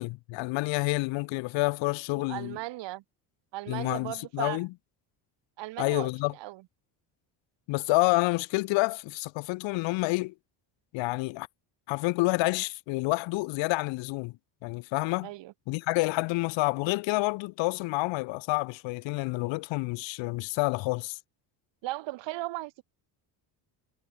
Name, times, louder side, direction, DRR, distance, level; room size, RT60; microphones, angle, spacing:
voice 1, 0.0-2.6 3.7-4.7 5.8-6.3 7.7-10.3 10.9-11.5 11.9-14.3 14.6-15.3 15.7-21.2, left 23 dB, 80° left, 1.3 m, -28 dB
voice 2, 2.2-3.0 3.5-4.6 5.6-6.6 15.2-15.5 21.8-22.8, right 17 dB, 70° right, 4.9 m, -37 dB
cardioid pair, 125°, 45 cm